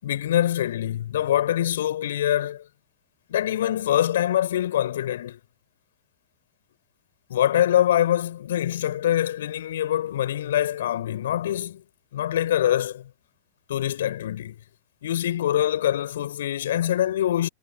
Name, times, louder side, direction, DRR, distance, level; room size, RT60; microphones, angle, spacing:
voice 1, 0.0-2.6 3.3-5.4 7.3-11.8 12.1-13.1 13.7-14.5 15.0-17.5, left 11 dB, 60° left, 4.8 m, -24 dB
figure-of-eight pair, 90°, 0 cm